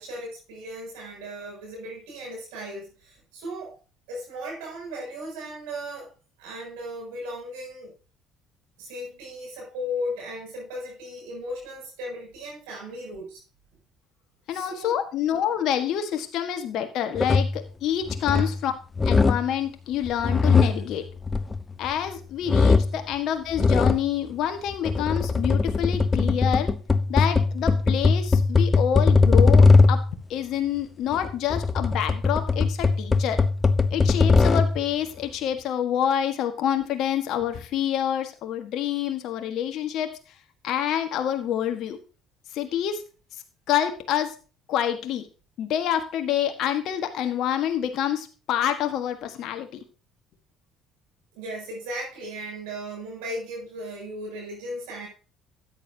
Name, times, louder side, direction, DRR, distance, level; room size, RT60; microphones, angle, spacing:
voice 1, 0.0-3.8 4.1-6.1 6.4-7.9 8.8-13.4 14.5-15.0 18.3-18.5 51.3-55.1, equal, 80° right, -2 dB, 6.7 m, -36 dB
voice 2, 14.5-18.7 19.0-21.0 21.8-26.7 27.1-30.0 30.3-33.4 33.9-40.1 40.6-42.0 42.5-43.0 43.7-44.3 44.7-45.3 45.6-49.7, left 10 dB, 65° left, 7 dB, 1.4 m, -27 dB
sound 1, 17.1-17.6 18.1-18.6 19.0-19.5 20.1-22.1 22.5-23.0 23.5-24.1 24.7-30.1 31.1-34.8, left 4 dB, 25° left, 0.8 m, -20 dB
13.0 x 9.3 x 2.8 m, 0.35 s
hypercardioid pair, 60°, 0 cm